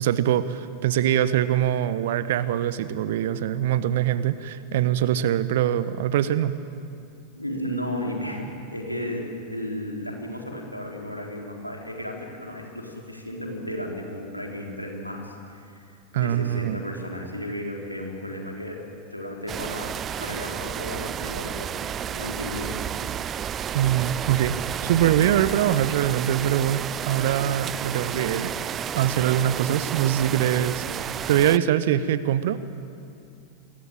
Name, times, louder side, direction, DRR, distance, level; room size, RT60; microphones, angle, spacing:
voice 1, 0.0-6.6 16.1-16.8 23.7-28.5 28.9-32.6, right 11 dB, 55° right, 15 dB, 1.2 m, -23 dB
voice 2, 7.3-18.8 19.1-22.8, left 1 dB, 90° left, 0 dB, 4.3 m, -34 dB
sound 1, 19.5-31.6, right 9 dB, 25° right, 0.6 m, -31 dB
28.0 x 22.5 x 8.9 m, 2.5 s
figure-of-eight pair, 90°, 0 cm